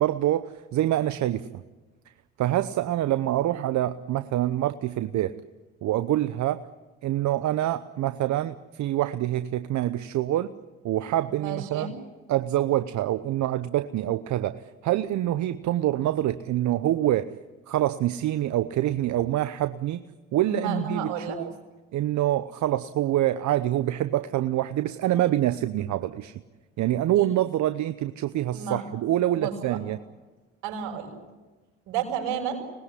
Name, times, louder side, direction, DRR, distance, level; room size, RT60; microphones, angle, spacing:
voice 1, 0.0-1.6 2.4-5.4 5.8-6.6 7.0-10.5 10.8-11.9 12.3-17.3 17.7-20.0 20.3-21.5 21.9-26.3 26.8-30.0, right 13 dB, 60° right, 12 dB, 0.9 m, -26 dB
voice 2, 11.4-11.9 20.4-21.4 27.2-27.3 28.5-28.8 29.3-29.8 30.6-31.1 31.9-32.6, right 6 dB, 75° right, 2 dB, 6.1 m, -31 dB
26.0 x 20.0 x 10.0 m, 1.2 s
hypercardioid pair, 65°, 32 cm